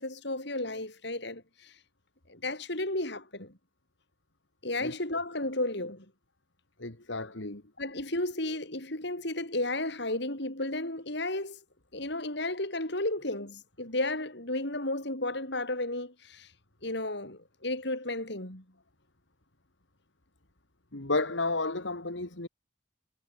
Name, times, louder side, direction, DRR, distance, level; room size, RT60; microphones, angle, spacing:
voice 1, 0.0-1.8 2.3-3.6 4.6-6.1 7.8-11.6 11.9-16.5 16.8-18.7, left 2 dB, 60° left, 7.3 m, -33 dB
voice 2, 6.8-7.6 20.9-22.5, left 3 dB, 80° left, 2.6 m, -32 dB
head